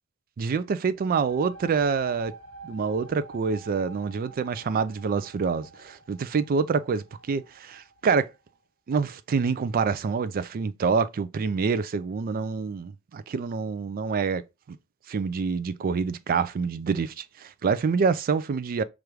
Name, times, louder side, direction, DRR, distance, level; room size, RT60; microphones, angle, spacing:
voice 1, 0.4-2.3 2.6-8.3 8.9-14.4 14.7-14.8 15.1-18.8, right 5 dB, 40° right, 0.3 m, -26 dB
sound 1, 0.9-8.4, right 4 dB, 80° right, 1.1 m, -48 dB
4.6 x 2.5 x 3.3 m
head